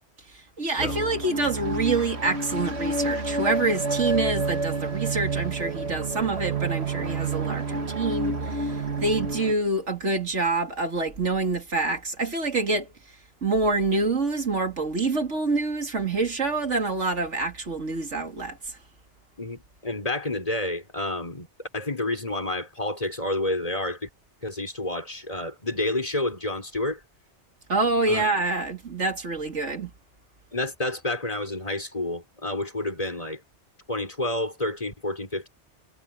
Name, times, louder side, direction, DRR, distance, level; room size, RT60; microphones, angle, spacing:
voice 1, 0.6-12.9 13.4-18.6 27.7-29.9, right 3 dB, 85° right, 3.0 m, -26 dB
sound 1, 0.8-9.5, right 3 dB, 65° right, 2.3 m, -29 dB
voice 2, 19.4-21.5 21.7-24.1 24.4-27.0 28.1-28.2 30.5-33.4 33.9-35.5, left 2 dB, 30° left, 4.7 m, -29 dB
omnidirectional pair, 1.2 m